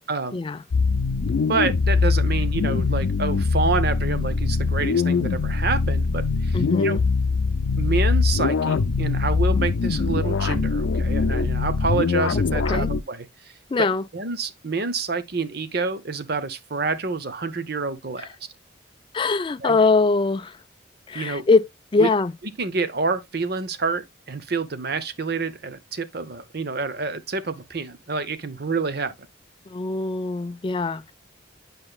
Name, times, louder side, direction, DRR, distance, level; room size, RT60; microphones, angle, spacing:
voice 1, 0.1-0.4 1.4-7.0 7.8-13.3 13.8-13.9 14.1-18.5 19.6-19.8 21.1-21.5 22.0-22.1 22.6-29.1, right 4 dB, 55° right, 0.8 m, -28 dB
sound 1, 0.7-13.0, left 4 dB, 85° left, 0.5 m, -22 dB
voice 2, 6.5-7.0 12.7-12.9 13.7-14.0 18.2-18.3 19.1-20.5 21.1-22.3 29.7-31.0, left 3 dB, 25° left, 0.3 m, -22 dB
9.9 x 5.3 x 2.3 m
head